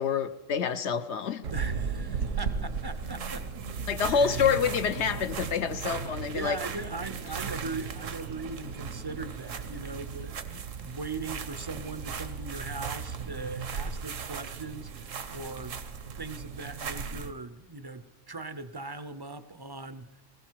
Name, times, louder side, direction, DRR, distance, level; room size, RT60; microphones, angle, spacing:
voice 1, 0.0-1.4 3.9-6.6, left 7 dB, 65° left, 11 dB, 1.0 m, -27 dB
sound 1, 1.4-17.3, right 5 dB, 80° right, 1.3 m, -36 dB
voice 2, 1.5-4.4 6.3-15.8 16.2-20.2, right 3 dB, 30° right, 12 dB, 0.4 m, -40 dB
20.0 x 15.5 x 4.6 m, 1.1 s
omnidirectional pair, 1.3 m